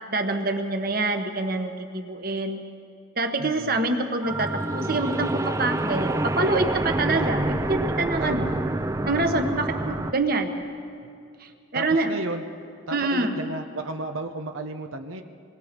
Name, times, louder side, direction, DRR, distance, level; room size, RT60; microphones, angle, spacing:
voice 1, 0.1-2.6 3.2-8.5 9.0-10.6 11.4-12.1 12.9-13.4, right 2 dB, 45° right, 5 dB, 1.3 m, -26 dB
voice 2, 3.4-3.8 8.2-8.7 11.0-11.1 11.7-12.4 12.9-15.2, right 2 dB, 90° right, 6 dB, 1.0 m, -33 dB
sound 1, 4.2-10.1, right 1 dB, 15° right, 0.5 m, -27 dB
26.5 x 20.5 x 5.3 m, 2.4 s
head